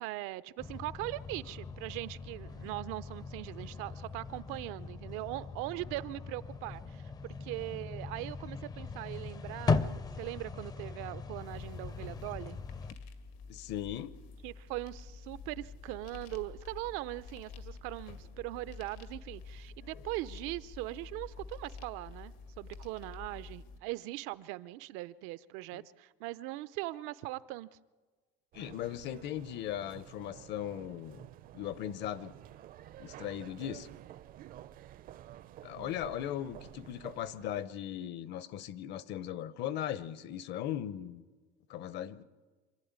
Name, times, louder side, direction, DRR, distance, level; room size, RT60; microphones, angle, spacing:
voice 1, 0.0-12.6 14.4-27.7 35.7-36.0, right 18 dB, 80° right, 0.7 m, -40 dB
sound 1, 0.6-12.9, left 4 dB, 20° left, 0.5 m, -39 dB
sound 2, 11.3-23.8, left 4 dB, 85° left, 2.2 m, -48 dB
voice 2, 13.5-14.1 19.9-20.0 25.7-25.8 28.5-31.3 31.5-32.3 33.0-33.9 35.6-41.2 41.7-42.2, left 11 dB, 55° left, 0.9 m, -38 dB
sound 3, 28.5-37.7, right 12 dB, 45° right, 0.5 m, -51 dB
26.0 x 12.0 x 9.6 m
cardioid pair, 160°, 21 cm